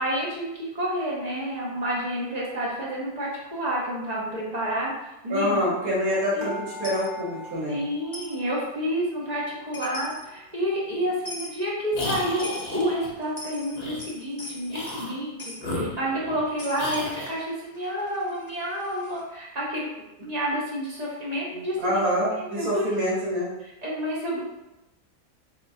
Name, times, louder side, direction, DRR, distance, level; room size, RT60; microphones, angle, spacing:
voice 1, 0.0-4.9 5.2-5.6 6.3-6.5 7.7-22.8 23.6-24.4, equal, 35° right, -5 dB, 0.9 m, -29 dB
voice 2, 5.3-7.8 21.8-23.5, equal, 75° right, -7 dB, 1.5 m, -26 dB
sound 1, 6.4-8.9 9.2-10.2 10.7-10.8 11.1-11.2, left 1 dB, 60° right, 1.0 m, -42 dB
Coin (dropping), 6.8-7.1 8.1-8.4 9.5-9.6 9.7-10.3 11.2-11.6 12.0-12.8 13.2-15.1 15.4-15.6 16.6-19.2, left 2 dB, 35° left, 0.3 m, -41 dB
sound 2, 11.9-13.1 13.7-14.0 14.7-15.2 15.6-16.4 16.8-17.4, left 1 dB, 50° left, 0.8 m, -33 dB
4.5 x 3.0 x 2.6 m, 0.94 s
omnidirectional pair, 1.5 m